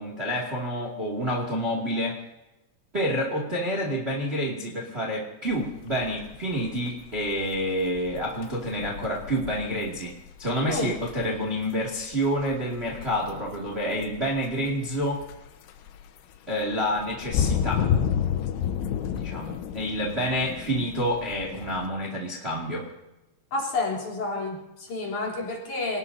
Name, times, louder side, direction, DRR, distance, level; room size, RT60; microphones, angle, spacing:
voice 1, 0.0-2.2 2.9-10.1 10.4-15.2 16.5-17.9 19.1-22.9, equal, 45° right, -1 dB, 0.7 m, -28 dB
sound 1, 5.5-21.9, left 8 dB, 75° left, 3.3 m, -32 dB
voice 2, 23.5-26.0, left 3 dB, 40° left, -2 dB, 4.5 m, -30 dB
27.0 x 19.0 x 2.8 m, 1.0 s
omnidirectional pair, 5.9 m